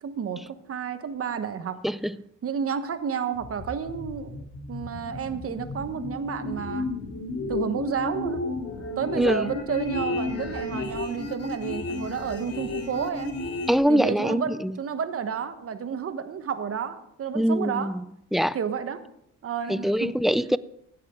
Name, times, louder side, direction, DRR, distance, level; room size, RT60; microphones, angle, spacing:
voice 1, 0.0-1.8 2.4-6.9 7.5-8.4 9.0-13.4 13.9-17.9 18.5-19.0 19.4-20.1, right 7 dB, 50° right, 1.2 m, -31 dB
voice 2, 1.8-2.2 9.2-9.5 13.7-14.8 17.3-18.0 18.3-18.6 19.7-20.6, equal, ahead, 0.3 m, -23 dB
sound 1, 3.3-13.8, left 3 dB, 55° left, 2.4 m, -33 dB
16.0 x 9.9 x 3.7 m
cardioid pair, 90°, 30 cm